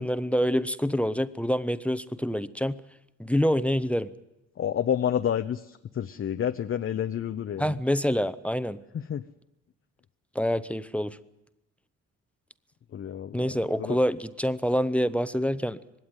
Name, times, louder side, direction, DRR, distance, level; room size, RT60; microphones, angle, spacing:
voice 1, 0.0-2.8 3.2-4.1 7.6-8.8 10.3-11.2 13.3-15.8, equal, 5° left, 15 dB, 0.8 m, -26 dB
voice 2, 4.6-7.8 8.9-9.2 12.9-14.0, left 9 dB, 45° left, 9 dB, 0.7 m, -29 dB
20.0 x 16.5 x 9.7 m, 0.92 s
cardioid pair, 90°, 30 cm